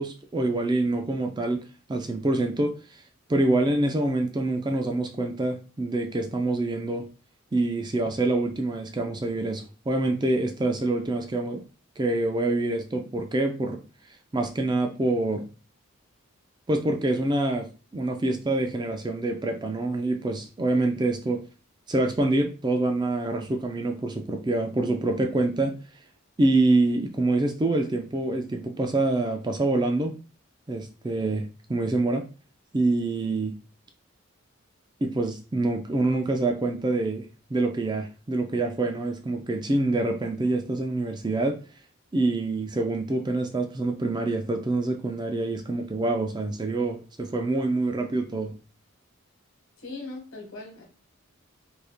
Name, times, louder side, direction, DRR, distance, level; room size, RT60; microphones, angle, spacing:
voice 1, 0.0-1.6 1.9-3.0 3.3-7.1 7.5-11.6 12.0-13.8 14.3-15.5 16.7-21.5 21.9-25.7 26.4-30.1 30.7-32.3 32.7-33.6 35.0-37.2 37.5-41.6 42.1-48.5, right 2 dB, 20° right, 0.3 m, -26 dB
voice 2, 49.8-50.8, left 3 dB, 70° left, 1.2 m, -39 dB
2.8 x 2.6 x 3.5 m
head